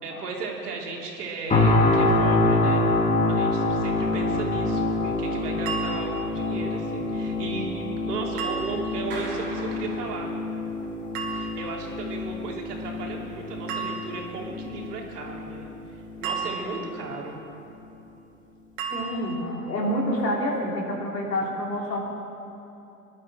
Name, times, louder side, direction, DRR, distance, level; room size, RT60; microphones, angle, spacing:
voice 1, 0.0-2.8 3.3-10.3 11.3-17.3, right 4 dB, 70° right, -1 dB, 3.3 m, -35 dB
sound 1, 1.5-16.5 17.0-17.2, left 2 dB, 15° left, 2.3 m, -26 dB
sound 2, 5.7-6.4 8.4-9.1 11.1-11.8 13.7-14.4 16.2-17.1 18.8-19.5, right 5 dB, 45° right, 3.0 m, -34 dB
Clapping, 9.1-10.8, right 2 dB, 20° right, 3.5 m, -40 dB
voice 2, 18.9-22.0, equal, 90° left, -2 dB, 3.8 m, -28 dB
21.5 x 12.0 x 4.4 m, 2.9 s
hypercardioid pair, 110°, 48 cm